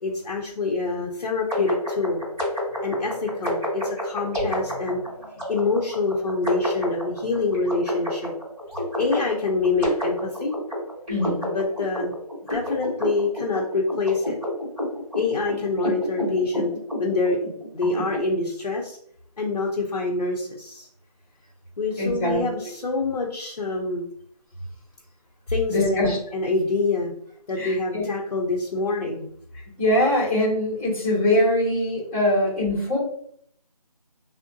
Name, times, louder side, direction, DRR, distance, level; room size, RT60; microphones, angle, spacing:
voice 1, 0.0-2.2 2.8-8.3 9.0-10.5 11.5-12.1 12.5-14.4 15.1-16.7 17.0-17.4 17.7-19.0 19.4-20.9 21.8-24.0 25.5-27.1 27.5-29.3, left 3 dB, 65° left, -3 dB, 0.8 m, -26 dB
sound 1, 1.5-18.2, left 1 dB, 5° right, 1.1 m, -30 dB
voice 2, 11.1-11.5 22.0-22.7 25.7-26.2 27.6-28.1 29.5-33.0, left 1 dB, 20° left, -7 dB, 1.4 m, -23 dB
3.5 x 2.1 x 2.6 m, 0.66 s
figure-of-eight pair, 170°, 21 cm